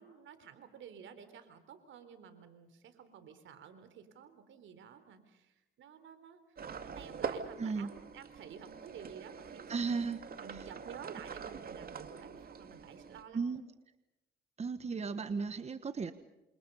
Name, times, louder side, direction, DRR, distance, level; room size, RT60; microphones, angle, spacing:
voice 1, 0.0-10.0 10.4-13.6, right 7 dB, 75° right, 10 dB, 4.0 m, -52 dB
sound 1, 6.6-13.2, right 6 dB, 50° right, 2.4 m, -44 dB
voice 2, 7.6-7.9 9.7-10.2 13.3-13.6 14.6-16.1, right 5 dB, 35° right, 11 dB, 1.3 m, -35 dB
28.5 x 26.5 x 5.5 m, 0.99 s
cardioid pair, 90°, 20 cm